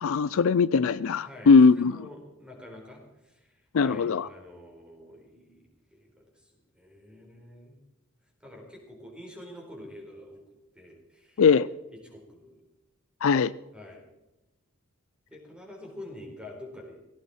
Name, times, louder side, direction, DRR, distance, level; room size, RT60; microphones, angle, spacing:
voice 1, 0.0-2.1 3.7-4.3 11.4-11.7 13.2-13.5, left 5 dB, 65° left, 17 dB, 0.4 m, -20 dB
voice 2, 1.2-7.8 8.4-10.4 10.7-11.4 11.9-12.6 13.7-14.0 15.3-17.0, left 1 dB, 5° right, 0 dB, 4.4 m, -47 dB
17.5 x 16.0 x 4.4 m, 0.97 s
head